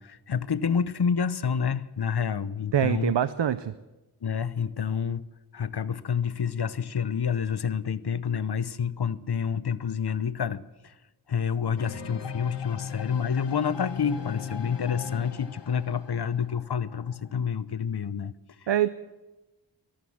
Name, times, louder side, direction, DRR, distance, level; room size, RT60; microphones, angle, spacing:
voice 1, 0.0-3.1 4.2-5.2 5.5-10.9 11.3-18.3 18.6-18.7, left 7 dB, 65° left, 16 dB, 0.7 m, -28 dB
voice 2, 2.7-3.7 18.7-18.9, right 10 dB, 90° right, 14 dB, 0.5 m, -24 dB
sound 1, 11.8-17.4, left 7 dB, 85° left, 1.1 m, -37 dB
14.5 x 13.0 x 7.1 m, 1.1 s
wide cardioid pair, 40°, 42 cm